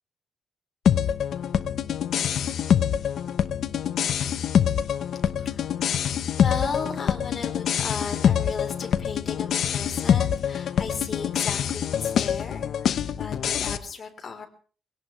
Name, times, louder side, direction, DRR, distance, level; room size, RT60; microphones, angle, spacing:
sound 1, 0.9-13.8, left 9 dB, 65° left, 0.9 m, -25 dB
voice 1, 5.4-5.9 6.3-14.5, left 5 dB, 35° left, 3 dB, 3.7 m, -35 dB
24.0 x 17.5 x 3.2 m, 0.41 s
cardioid pair, 130°, 0 cm